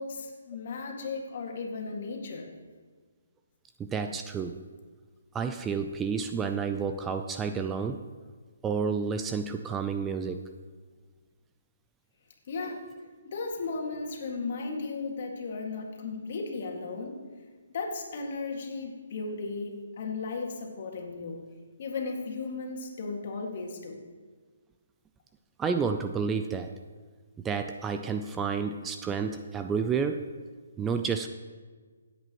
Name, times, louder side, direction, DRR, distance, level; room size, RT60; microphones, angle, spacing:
voice 1, 0.0-2.5 12.5-12.8 13.2-17.2 17.7-21.4 21.8-24.0, left 4 dB, 50° left, 1 dB, 2.0 m, -35 dB
voice 2, 3.8-4.6 5.3-8.0 8.6-10.4 25.6-26.7 27.4-30.3 30.8-31.3, right 5 dB, 10° right, 7 dB, 0.4 m, -30 dB
16.0 x 8.2 x 3.0 m, 1.5 s
hypercardioid pair, 150°, 0 cm